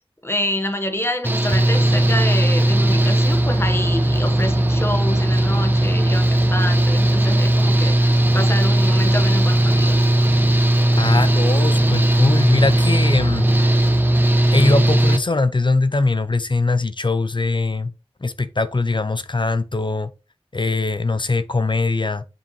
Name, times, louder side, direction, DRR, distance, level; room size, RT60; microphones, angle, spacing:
voice 1, 0.2-10.0, left 1 dB, 25° left, 1.3 m, -27 dB
Engine / Mechanical fan, 1.2-15.2, right 1 dB, 20° right, 1.0 m, -17 dB
voice 2, 11.0-13.8 14.5-17.9 18.2-20.1 20.5-22.2, left 3 dB, 50° left, 0.6 m, -21 dB
7.2 x 5.4 x 3.1 m
wide cardioid pair, 50°, 10 cm